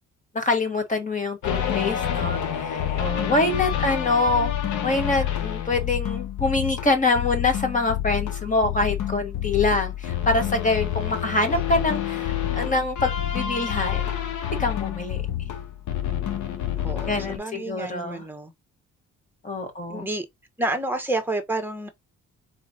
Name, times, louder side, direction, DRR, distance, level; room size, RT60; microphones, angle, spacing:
voice 1, 0.3-4.5 4.8-14.1 14.6-15.2 17.1-18.2 19.4-20.1, left 2 dB, 25° left, 1.4 m, -25 dB
sound 1, 1.4-17.4, left 10 dB, 75° left, 1.1 m, -28 dB
voice 2, 16.8-18.5 19.9-20.3 20.6-21.9, right 2 dB, 5° right, 1.2 m, -30 dB
4.2 x 3.0 x 3.9 m
cardioid pair, 90°, 30 cm